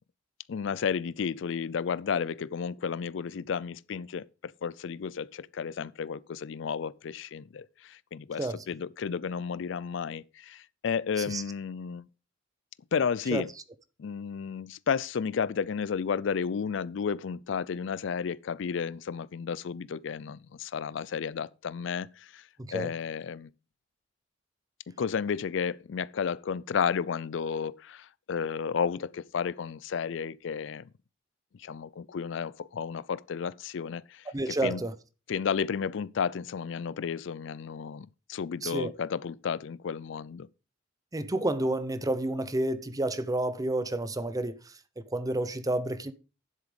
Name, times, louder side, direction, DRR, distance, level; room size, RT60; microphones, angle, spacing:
voice 1, 0.5-12.1 12.9-13.5 14.0-23.5 25.0-30.9 31.6-34.8 35.3-40.5, left 6 dB, 65° left, 0.4 m, -32 dB
voice 2, 22.6-22.9 34.3-34.9 38.6-38.9 41.1-46.1, right 1 dB, 20° right, 0.7 m, -30 dB
10.5 x 7.7 x 5.0 m
head